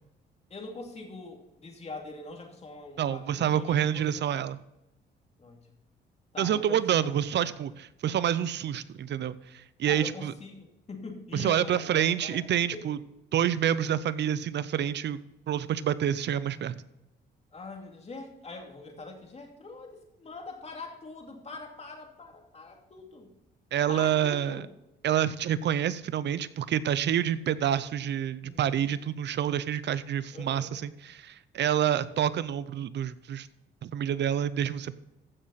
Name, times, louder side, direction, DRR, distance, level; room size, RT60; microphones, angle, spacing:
voice 1, 0.5-4.4 5.4-5.8 6.3-7.3 9.9-12.4 12.7-12.9 17.5-23.3 23.9-24.7 28.4-28.9 30.3-30.8, left 3 dB, 30° left, 2 dB, 2.6 m, -43 dB
voice 2, 3.0-4.6 6.4-10.3 11.3-13.0 13.3-15.2 15.5-16.8 23.7-24.6 25.0-33.5 33.8-35.0, right 10 dB, 60° right, 16 dB, 0.7 m, -28 dB
15.5 x 6.4 x 4.1 m, 0.90 s
cardioid pair, 90°, 20 cm